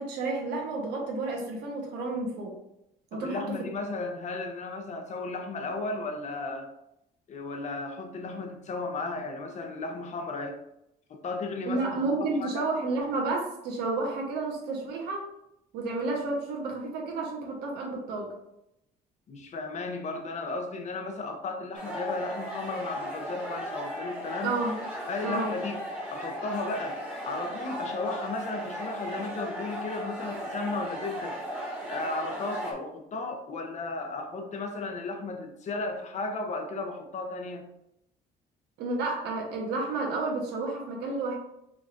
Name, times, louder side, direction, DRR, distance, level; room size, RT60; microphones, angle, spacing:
voice 1, 0.0-2.6 3.1-3.6 11.6-15.3 15.7-18.3 24.4-24.8 25.2-25.6 38.8-41.4, right 3 dB, 80° right, 0 dB, 1.1 m, -31 dB
voice 2, 3.1-6.7 7.3-10.6 11.2-11.8 12.2-12.6 19.3-24.5 25.1-25.8 26.1-31.4 31.9-37.6, left 3 dB, 45° left, 4 dB, 0.8 m, -34 dB
sound 1, 21.7-32.7, equal, 10° right, 1.4 m, -36 dB
5.0 x 3.3 x 2.5 m, 0.83 s
cardioid pair, 110°, 17 cm